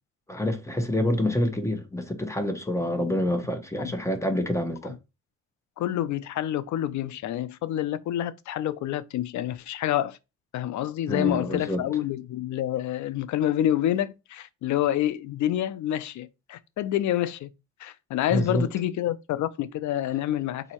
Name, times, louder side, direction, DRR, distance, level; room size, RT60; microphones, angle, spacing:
voice 1, 0.3-4.9 11.1-11.8 18.3-18.7, left 1 dB, 10° left, 1.0 m, -27 dB
voice 2, 5.8-10.2 10.5-17.5 17.8-20.7, left 12 dB, 70° left, 0.5 m, -28 dB
4.0 x 2.8 x 4.4 m
cardioid pair, 90°, 30 cm